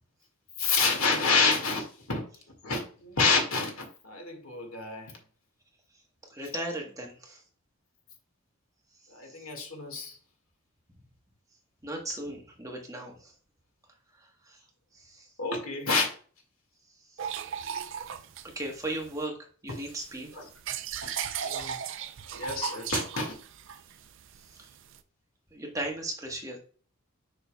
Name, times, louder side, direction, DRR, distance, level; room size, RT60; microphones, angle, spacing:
voice 1, 0.6-2.2 2.6-5.1 9.1-10.2 15.4-16.1 20.3-20.5 21.0-21.8 22.3-23.4, left 4 dB, 75° left, 1.9 m, -28 dB
voice 2, 6.3-7.4 9.2-9.4 11.8-13.3 14.2-14.6 14.9-15.3 17.1-17.3 18.5-19.4 19.6-20.3 24.5-24.7 25.5-26.6, right 1 dB, 15° right, 1.3 m, -37 dB
sound 1, 17.2-19.3 19.7-25.0, right 8 dB, 60° right, 0.5 m, -37 dB
6.7 x 6.1 x 2.3 m
head